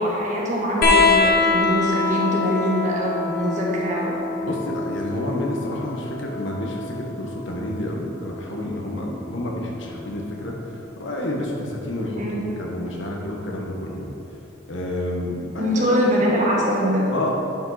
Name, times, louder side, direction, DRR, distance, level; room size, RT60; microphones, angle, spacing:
voice 1, 0.0-4.1 12.2-12.4 15.6-17.1, equal, 40° right, -4 dB, 1.5 m, -23 dB
sound 1, 0.8-7.9 9.3-10.1 11.4-11.5, left 4 dB, 50° left, 1.3 m, -24 dB
voice 2, 4.4-14.1 14.7-16.0 17.1-17.3, left 1 dB, 75° left, -1 dB, 1.3 m, -29 dB
10.5 x 5.3 x 4.2 m, 2.9 s
head